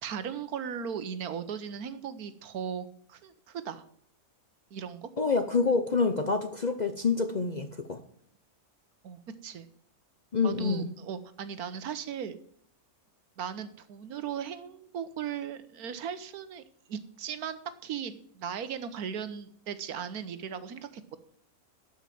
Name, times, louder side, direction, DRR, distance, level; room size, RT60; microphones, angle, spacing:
voice 1, 0.0-3.8 4.7-5.1 9.0-9.7 10.4-12.4 13.4-16.6 16.9-21.2, right 8 dB, 80° right, 12 dB, 1.4 m, -37 dB
voice 2, 5.2-8.0 10.3-10.9, left 4 dB, 40° left, 7 dB, 0.6 m, -27 dB
12.0 x 5.6 x 7.5 m, 0.62 s
omnidirectional pair, 1.6 m